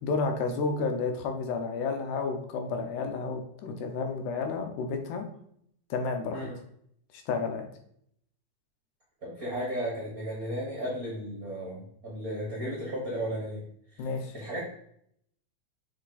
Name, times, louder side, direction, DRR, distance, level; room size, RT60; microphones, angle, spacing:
voice 1, 0.0-5.3 5.9-6.5 7.1-7.7 14.0-14.3, left 4 dB, 80° left, 4 dB, 2.3 m, -31 dB
voice 2, 9.2-13.6 13.9-14.1 14.3-14.6, equal, 45° right, -4 dB, 1.2 m, -34 dB
6.0 x 4.1 x 4.0 m, 0.69 s
omnidirectional pair, 3.6 m